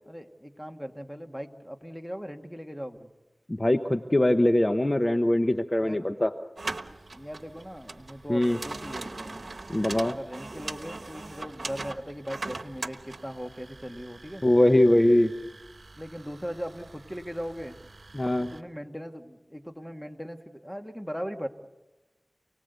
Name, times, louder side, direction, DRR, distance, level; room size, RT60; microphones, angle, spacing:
voice 1, 0.1-3.1 5.8-6.1 7.1-9.5 10.0-14.5 16.0-17.8 18.4-21.5, equal, 5° left, 5 dB, 1.8 m, -39 dB
voice 2, 3.5-6.3 8.3-8.6 9.7-10.2 14.4-15.3 18.1-18.5, left 1 dB, 30° left, 7 dB, 1.0 m, -22 dB
sound 1, 6.6-18.6, right 3 dB, 80° right, 1.0 m, -41 dB
28.5 x 19.0 x 8.1 m, 1.1 s
wide cardioid pair, 55°, 0 cm